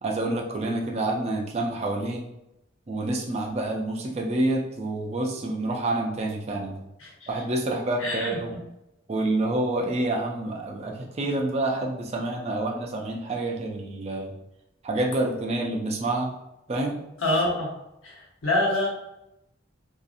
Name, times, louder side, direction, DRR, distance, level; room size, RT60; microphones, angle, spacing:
voice 1, 0.0-2.2 2.9-6.8 7.3-8.5 9.1-14.3 14.8-16.3 16.7-17.0, right 2 dB, 30° right, 0 dB, 0.4 m, -28 dB
voice 2, 8.0-8.4 17.2-17.7 18.0-18.9, left 1 dB, 85° left, -3 dB, 0.9 m, -26 dB
2.7 x 2.4 x 2.5 m, 0.86 s
head